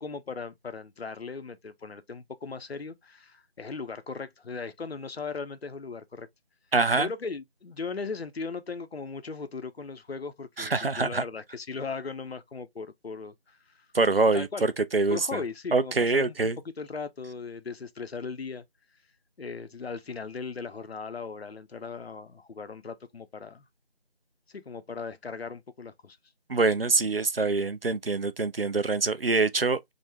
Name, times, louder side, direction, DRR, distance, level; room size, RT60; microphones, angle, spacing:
voice 1, 0.0-6.3 7.0-13.9 14.3-14.6 15.1-16.3 16.8-18.6 19.4-23.6 24.5-26.2, left 4 dB, 70° left, 0.6 m, -38 dB
voice 2, 6.7-7.1 10.6-11.2 13.9-15.4 15.7-16.6 26.5-29.9, right 3 dB, 65° right, 0.5 m, -25 dB
3.7 x 2.0 x 3.2 m
figure-of-eight pair, 180°, 32 cm